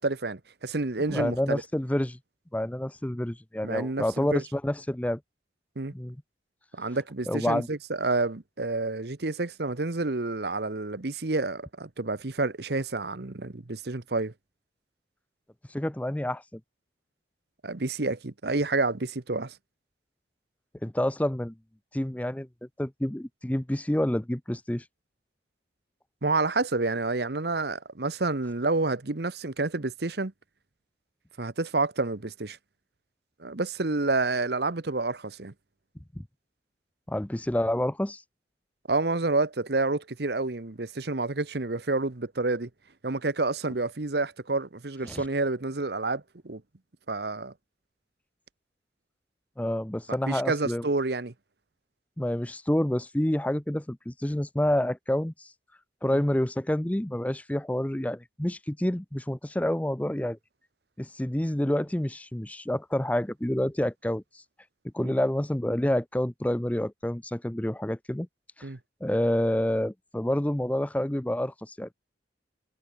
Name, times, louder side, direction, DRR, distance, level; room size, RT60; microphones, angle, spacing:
voice 1, 0.0-1.6 3.6-4.4 5.8-5.9 6.7-14.3 17.6-19.5 26.2-30.3 31.4-32.6 33.4-35.5 38.9-42.7 43.0-46.6 47.1-47.5 50.1-51.3 56.1-56.2 65.0-65.1 68.6-68.8, right 3 dB, 60° right, 1.0 m, -29 dB
voice 2, 1.1-2.2 2.5-5.2 5.9-6.2 7.3-7.7 15.7-16.6 20.8-21.5 21.9-22.5 22.8-24.8 36.2-36.3 37.1-38.2 45.1-45.2 49.6-50.8 52.2-55.5 56.0-60.4 61.0-64.4 64.9-68.3 68.6-68.7 69.0-71.9, left 1 dB, 10° left, 0.5 m, -28 dB
head